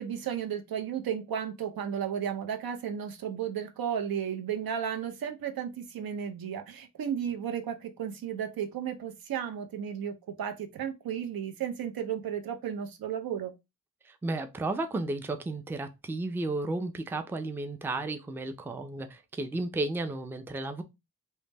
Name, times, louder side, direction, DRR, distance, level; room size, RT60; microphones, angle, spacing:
voice 1, 0.0-13.5, right 8 dB, 75° right, 0.5 m, -34 dB
voice 2, 14.1-20.8, right 2 dB, 5° right, 0.3 m, -33 dB
2.1 x 2.0 x 3.2 m
cardioid pair, 45°, 36 cm